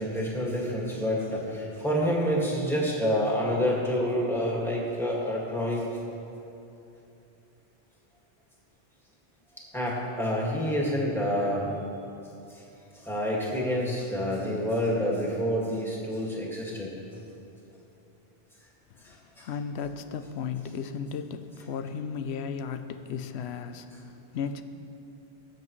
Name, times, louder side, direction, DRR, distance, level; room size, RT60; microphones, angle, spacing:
voice 1, 0.0-5.8 9.7-11.7 12.5-12.6 12.9-17.0 19.0-19.5, equal, ahead, -4 dB, 1.9 m, -28 dB
voice 2, 19.0-24.6, left 6 dB, 90° left, 10 dB, 0.9 m, -35 dB
19.0 x 7.6 x 3.1 m, 2.7 s
omnidirectional pair, 1.1 m